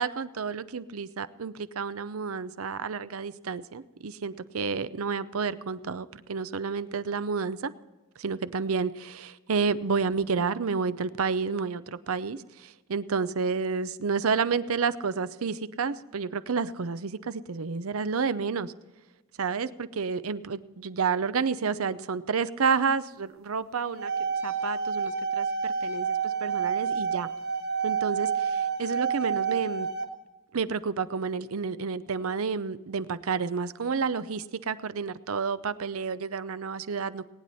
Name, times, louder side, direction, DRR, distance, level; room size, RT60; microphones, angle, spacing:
voice 1, 0.0-7.7 8.2-18.7 19.4-24.1 24.4-27.3 27.8-29.9 30.5-37.3, right 5 dB, 90° right, 14 dB, 0.6 m, -30 dB
sound 1, 23.8-30.0, right 6 dB, 50° right, 1.5 m, -29 dB
19.5 x 9.4 x 4.1 m, 1.2 s
head